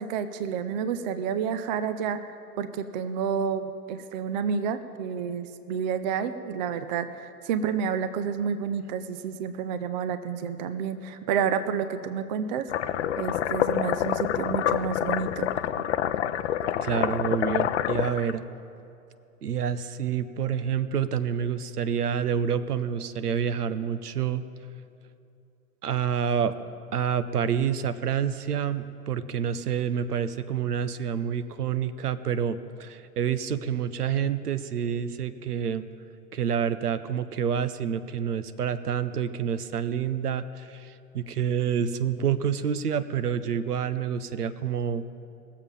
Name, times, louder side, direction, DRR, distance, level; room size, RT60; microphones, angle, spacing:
voice 1, 0.0-2.2 2.6-12.7 13.2-15.5, right 7 dB, 30° right, 11 dB, 0.4 m, -30 dB
sound 1, 12.7-18.3, left 11 dB, 50° left, 0.6 m, -27 dB
voice 2, 16.8-18.4 19.4-24.4 25.8-26.5 26.9-35.9 36.3-45.0, right 8 dB, 75° right, 13 dB, 0.8 m, -28 dB
19.5 x 7.4 x 5.3 m, 2.6 s
figure-of-eight pair, 105°, 47 cm